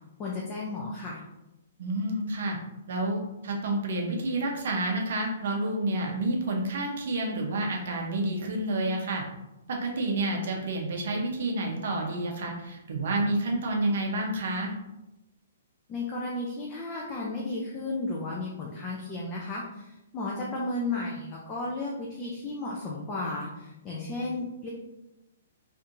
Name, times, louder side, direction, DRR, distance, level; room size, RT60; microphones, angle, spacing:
voice 1, 0.2-1.2 15.9-24.7, left 2 dB, 15° left, -4 dB, 0.4 m, -34 dB
voice 2, 1.8-2.6 2.9-9.2 9.7-14.7, right 2 dB, 55° right, 0 dB, 0.7 m, -29 dB
4.3 x 2.6 x 2.5 m, 0.93 s
hypercardioid pair, 175°, 0 cm